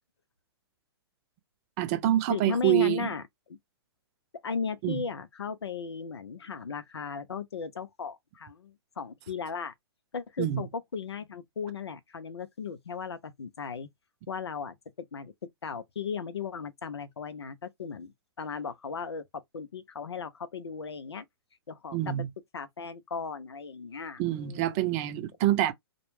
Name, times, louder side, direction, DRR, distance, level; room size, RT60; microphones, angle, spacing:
voice 1, 1.8-3.1 4.8-5.0 10.4-10.6 21.9-22.3 24.2-25.7, right 14 dB, 35° right, 0.6 m, -26 dB
voice 2, 2.3-3.6 4.4-9.7 10.1-13.9 14.3-14.8 15.1-15.3 15.6-21.2 21.7-22.1 22.5-24.9, left 5 dB, 85° left, 0.6 m, -36 dB
2.2 x 2.2 x 3.0 m
hypercardioid pair, 125°, 13 cm